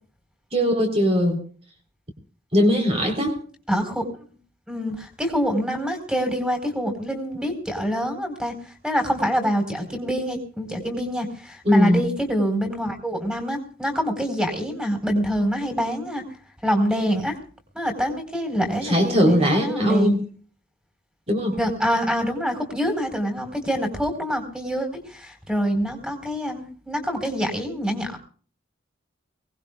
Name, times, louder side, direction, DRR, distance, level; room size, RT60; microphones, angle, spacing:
voice 1, 0.5-1.4 2.5-3.4 11.7-12.0 18.8-20.2 21.3-21.6, equal, 30° right, 2 dB, 3.7 m, -20 dB
voice 2, 3.7-4.4 4.7-16.2 16.6-17.4 17.7-20.1 21.6-28.2, equal, 5° right, 1 dB, 4.3 m, -25 dB
23.0 x 19.0 x 2.4 m, 0.43 s
head